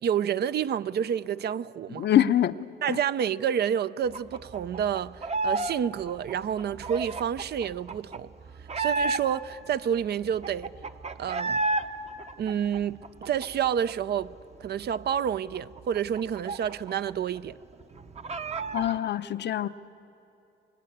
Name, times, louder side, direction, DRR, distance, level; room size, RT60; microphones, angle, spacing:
voice 1, 0.0-2.1 2.8-8.3 8.8-10.7 11.2-11.6 12.4-14.3 14.6-17.6, right 9 dB, 55° right, 0.5 m, -29 dB
voice 2, 2.0-2.6 2.9-3.0 18.7-19.7, left 11 dB, 60° left, 0.7 m, -24 dB
sound 1, 4.1-5.7 6.0-9.5 9.9-10.0 10.2-11.9 12.2-13.9 14.2-14.3 14.6-17.1 17.4-17.5 17.8-19.0, right 3 dB, 35° right, 0.9 m, -32 dB
26.0 x 19.5 x 8.6 m
cardioid pair, 90°, 20 cm